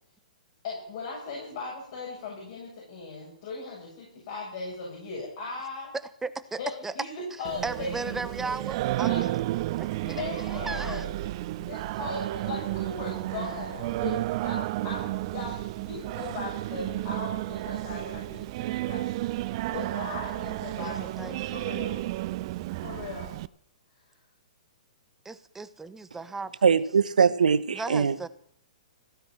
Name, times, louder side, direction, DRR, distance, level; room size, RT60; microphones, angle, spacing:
voice 1, 0.6-5.9 6.6-8.2 9.0-9.3 10.0-19.4 19.7-22.1 22.7-23.4, left 3 dB, 50° left, -3 dB, 7.5 m, -38 dB
voice 2, 6.2-6.9 7.6-9.4 9.8-11.0 13.4-14.0 20.8-21.6 25.2-26.5 27.7-28.3, right 3 dB, 10° right, 14 dB, 0.9 m, -37 dB
Singing, 7.4-23.5, right 17 dB, 45° right, 0.5 m, -32 dB
voice 3, 26.6-28.3, right 6 dB, 75° right, 16 dB, 0.9 m, -22 dB
16.0 x 9.9 x 7.7 m, 0.65 s
figure-of-eight pair, 120°, 4 cm